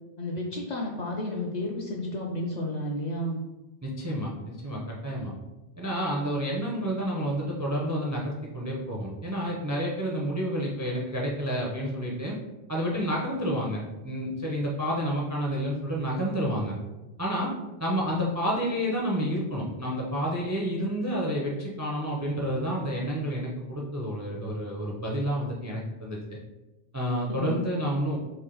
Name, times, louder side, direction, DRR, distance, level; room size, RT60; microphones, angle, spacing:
voice 1, 0.2-3.4 27.3-27.6, left 1 dB, 55° left, -1 dB, 0.5 m, -32 dB
voice 2, 3.8-5.3 5.8-12.4 12.7-16.8 17.2-17.5 17.8-26.4 26.9-28.2, equal, 25° right, -2 dB, 0.3 m, -29 dB
3.2 x 2.5 x 3.8 m, 1.1 s
omnidirectional pair, 1.1 m